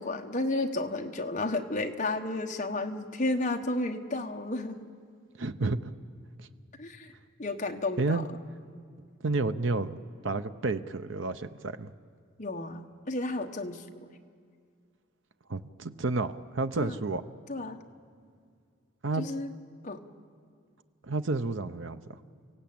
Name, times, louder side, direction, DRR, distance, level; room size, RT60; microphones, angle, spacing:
voice 1, 0.0-4.9 6.8-7.1 7.4-8.2 12.4-14.1 16.8-17.0 17.5-17.8 19.2-19.5 19.8-20.0, left 2 dB, 35° left, 4 dB, 1.1 m, -32 dB
voice 2, 5.4-5.9 6.4-6.5 8.0-8.3 9.2-10.0 10.2-11.9 15.5-17.2 19.0-19.2 21.1-22.0, right 3 dB, 70° right, 11 dB, 0.8 m, -30 dB
29.5 x 17.0 x 8.8 m, 2.2 s
head